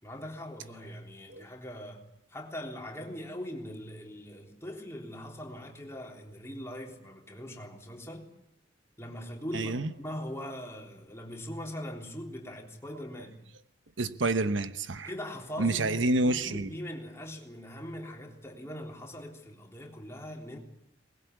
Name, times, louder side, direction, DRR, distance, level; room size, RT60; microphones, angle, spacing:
voice 1, 0.0-8.3 9.0-13.4 15.0-20.6, equal, 15° left, 3.6 m, -41 dB
voice 2, 9.5-9.9 14.0-15.1 15.6-16.7, right 2 dB, 85° right, 1.1 m, -28 dB
22.0 x 20.5 x 8.3 m
head